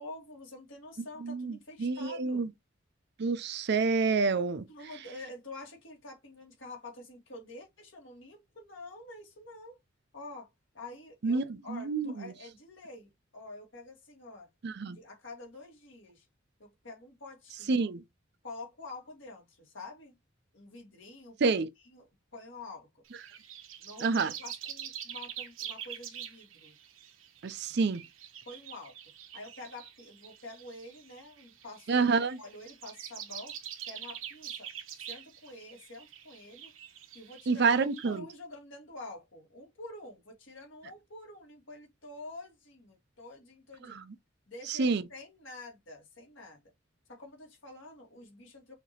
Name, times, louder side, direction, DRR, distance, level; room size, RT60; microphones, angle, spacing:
voice 1, 0.0-2.5 4.7-9.8 10.1-10.5 10.7-14.5 14.9-16.2 16.6-17.9 18.4-20.1 20.5-21.5 21.8-23.0 23.8-26.8 28.5-28.9 29.3-32.1 32.4-33.6 33.9-34.7 35.0-36.7 37.1-37.7 38.0-44.0 44.5-46.6 47.1-48.7, left 2 dB, 70° left, 1.9 m, -47 dB
voice 2, 1.2-1.5 1.8-2.5 3.2-4.7 11.2-12.3 14.6-15.0 17.7-18.0 21.4-21.7 24.0-24.3 27.4-28.0 31.9-32.4 37.5-38.2 44.7-45.0, right 4 dB, 55° right, 0.5 m, -28 dB
sound 1, 23.1-38.2, right 10 dB, 85° right, 1.0 m, -45 dB
5.8 x 2.7 x 2.9 m
head